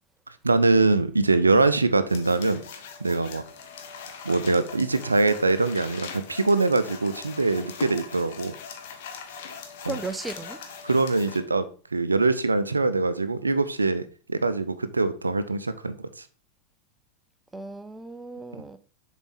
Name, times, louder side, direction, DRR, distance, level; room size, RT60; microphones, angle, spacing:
voice 1, 0.4-2.6 3.0-3.4 4.2-8.5 9.8-10.0 10.8-14.0 14.3-16.1, right 3 dB, 80° right, 0.5 m, -23 dB
sound 1, 2.1-11.4, left 6 dB, 55° left, 1.0 m, -41 dB
voice 2, 9.9-10.6 17.5-18.8, right 3 dB, 10° right, 0.5 m, -35 dB
6.9 x 4.1 x 4.0 m
figure-of-eight pair, 90°, 0 cm